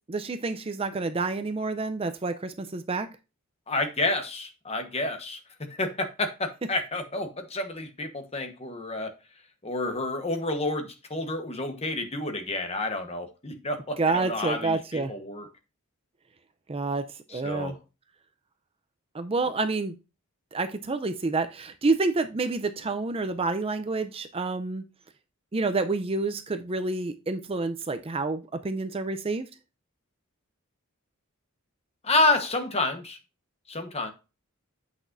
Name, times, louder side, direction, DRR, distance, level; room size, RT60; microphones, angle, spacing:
voice 1, 0.1-3.1 14.0-15.1 16.7-17.1 17.3-17.8 19.1-19.9 20.5-24.8 25.5-29.4, right 3 dB, 25° right, 0.5 m, -28 dB
voice 2, 3.7-5.4 5.8-9.1 9.6-15.5 17.3-17.8 32.0-33.2 33.7-34.1, left 2 dB, 30° left, 1.1 m, -29 dB
8.4 x 6.1 x 2.6 m
head